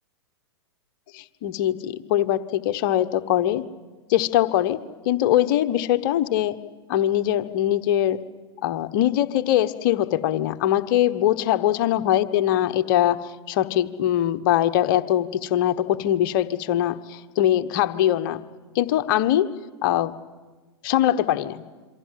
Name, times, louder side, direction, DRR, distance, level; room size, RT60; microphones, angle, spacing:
voice 1, 1.1-3.7 4.1-6.6 6.9-8.2 8.6-18.4 18.7-19.5 19.8-20.1 20.8-21.6, left 12 dB, 50° left, 11 dB, 1.2 m, -22 dB
27.0 x 24.0 x 7.7 m, 1.4 s
hypercardioid pair, 105°, 14 cm